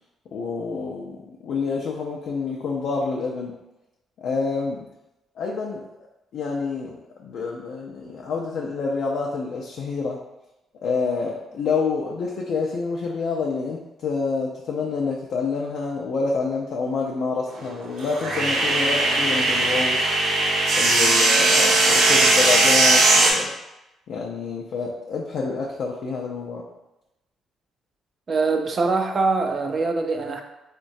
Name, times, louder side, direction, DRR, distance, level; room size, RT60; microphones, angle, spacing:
voice 1, 0.3-3.6 4.2-4.9 5.4-5.9 6.3-7.0 7.2-10.2 10.8-20.2 20.7-23.5 24.1-26.6, left 4 dB, 70° left, -1 dB, 0.4 m, -27 dB
sound 1, 17.5-23.3, right 2 dB, 75° right, 0.7 m, -19 dB
voice 2, 28.3-30.4, right 3 dB, 45° right, 5 dB, 0.4 m, -23 dB
3.7 x 2.1 x 2.6 m, 0.96 s
cardioid pair, 90°, 0 cm